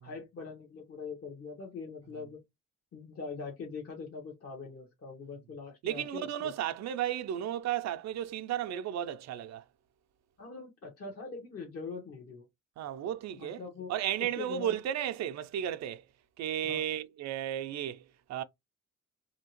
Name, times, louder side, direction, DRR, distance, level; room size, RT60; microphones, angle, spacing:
voice 1, 0.0-2.4 2.9-6.5 10.4-12.5 13.4-13.9 14.2-14.8 16.6-16.8, left 4 dB, 50° left, 1.1 m, -43 dB
voice 2, 5.8-9.6 12.8-13.6 13.9-16.0 16.4-18.4, right 10 dB, 60° right, 0.4 m, -34 dB
2.8 x 2.8 x 2.9 m
cardioid pair, 90°, 30 cm